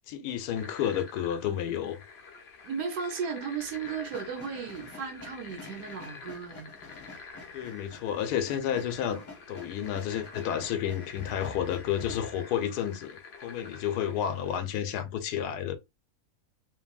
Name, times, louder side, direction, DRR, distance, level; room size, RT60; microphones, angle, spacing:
voice 1, 0.1-2.0 7.5-9.2 9.5-15.8, left 9 dB, 80° left, 1.1 m, -31 dB
sound 1, 0.5-14.7, left 4 dB, 55° left, 0.7 m, -48 dB
voice 2, 2.6-6.7, right 6 dB, 90° right, 1.3 m, -35 dB
sound 2, 3.6-12.4, left 4 dB, 35° left, 0.9 m, -48 dB
2.8 x 2.6 x 2.3 m
omnidirectional pair, 1.7 m